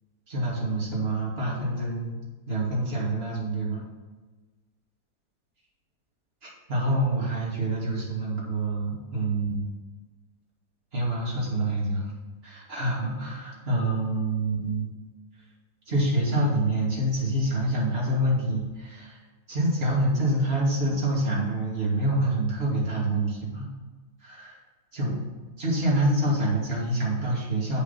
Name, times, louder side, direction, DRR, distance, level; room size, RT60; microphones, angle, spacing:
voice 1, 0.3-2.2 2.5-3.8 6.4-9.7 10.9-12.1 12.4-14.9 15.9-19.2 19.5-23.7 24.2-24.6 24.9-25.1 25.6-27.8, right 1 dB, 40° right, -5 dB, 2.8 m, -26 dB
8.2 x 7.1 x 5.8 m, 1.3 s
omnidirectional pair, 1.7 m